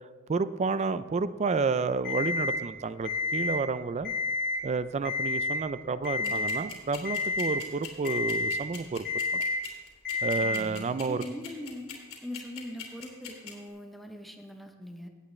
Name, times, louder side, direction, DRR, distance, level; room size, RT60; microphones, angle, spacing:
voice 1, 0.3-4.1 4.6-9.0 9.3-9.4 10.2-11.2, right 4 dB, 30° right, 14 dB, 0.4 m, -30 dB
Alarm, 2.0-2.6 3.0-3.6 4.0-4.6 5.0-5.6 6.0-6.6 7.0-7.6 8.0-8.6 9.0-9.6 10.0-10.6, left 3 dB, 55° left, 3.2 m, -29 dB
sound 1, 6.0-13.5, left 11 dB, 85° left, 2.7 m, -41 dB
voice 2, 10.4-11.9 12.2-15.1, left 1 dB, ahead, 3 dB, 0.7 m, -41 dB
16.5 x 8.3 x 3.2 m, 1.3 s
head